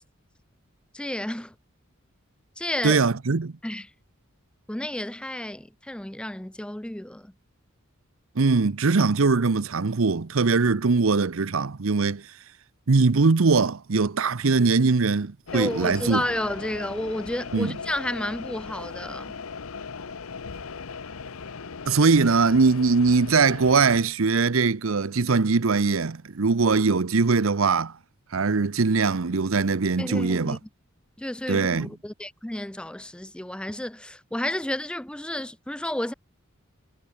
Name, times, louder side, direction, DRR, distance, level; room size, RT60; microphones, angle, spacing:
voice 1, 0.9-1.5 2.6-3.1 3.6-3.9 4.7-7.3 15.5-19.3 30.0-30.6 31.2-36.1, left 1 dB, 5° left, 0.5 m, -31 dB
voice 2, 2.8-3.5 8.4-12.2 12.9-16.2 17.5-17.7 21.9-27.9 28.3-30.6 31.5-31.9, right 4 dB, 70° right, 0.8 m, -21 dB
sound 1, 15.5-24.0, left 5 dB, 90° left, 0.9 m, -38 dB
head